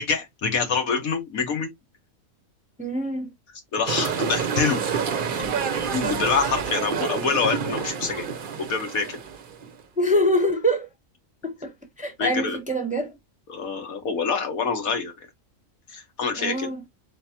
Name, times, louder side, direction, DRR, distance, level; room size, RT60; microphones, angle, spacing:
voice 1, 0.0-1.7 3.7-4.8 5.4-5.6 5.9-8.3 8.6-9.2 12.2-12.6 13.5-15.1 15.9-16.7, left 5 dB, 85° left, 1.7 m, -26 dB
voice 2, 2.8-3.3 10.0-10.9 11.4-13.1 16.3-16.8, equal, 5° right, 0.8 m, -25 dB
sound 1, 3.9-9.8, right 6 dB, 50° right, 0.7 m, -28 dB
4.5 x 3.9 x 2.8 m
omnidirectional pair, 1.4 m